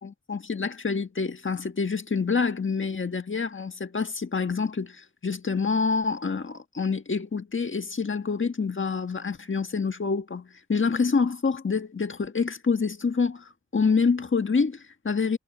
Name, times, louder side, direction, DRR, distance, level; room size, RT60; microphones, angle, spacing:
voice 1, 0.0-15.4, left 5 dB, 40° left, 1.6 m, -27 dB
wide cardioid pair, 75°, 30 cm